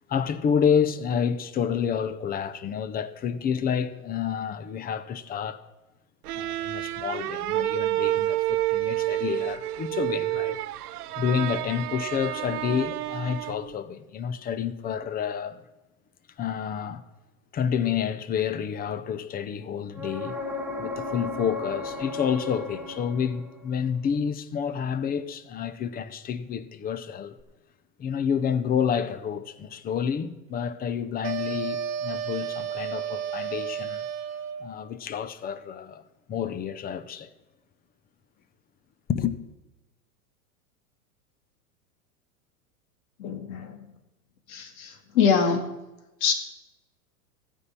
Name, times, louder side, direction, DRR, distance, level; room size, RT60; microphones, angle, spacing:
voice 1, 0.1-5.6 6.3-10.6 11.2-15.6 16.4-17.0 17.5-20.4 20.8-27.3 28.0-34.1 34.6-36.0 36.3-37.3 39.1-39.4, left 7 dB, 20° left, 0.7 m, -29 dB
sound 1, 6.2-13.7, right 15 dB, 90° right, 0.6 m, -29 dB
sound 2, 19.9-23.7 27.4-27.5, left 2 dB, 5° right, 1.1 m, -35 dB
sound 3, 31.2-34.7, right 8 dB, 35° right, 1.1 m, -32 dB
voice 2, 43.2-43.9 44.5-45.6 46.2-46.3, left 6 dB, 65° left, 2.4 m, -24 dB
13.5 x 5.5 x 8.8 m
hypercardioid pair, 115°, 44 cm